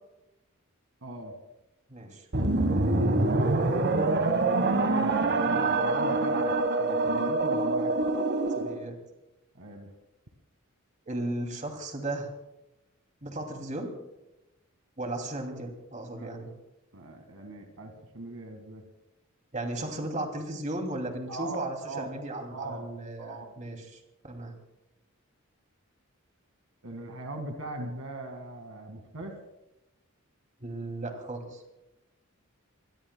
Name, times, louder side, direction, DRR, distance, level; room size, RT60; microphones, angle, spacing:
voice 1, 1.0-1.4 3.7-7.9 9.5-9.9 16.2-16.3 16.9-18.8 21.3-22.1 22.5-22.9 23.2-23.5 26.8-29.4, right 2 dB, 75° right, 5 dB, 2.0 m, -40 dB
voice 2, 1.9-2.2 8.5-9.0 11.1-12.3 13.2-13.9 15.0-16.5 19.5-24.5 30.6-31.6, right 1 dB, 35° right, 4 dB, 2.7 m, -35 dB
sound 1, 2.3-8.8, right 2 dB, 55° right, 1.4 m, -25 dB
25.5 x 21.0 x 2.3 m, 0.94 s
head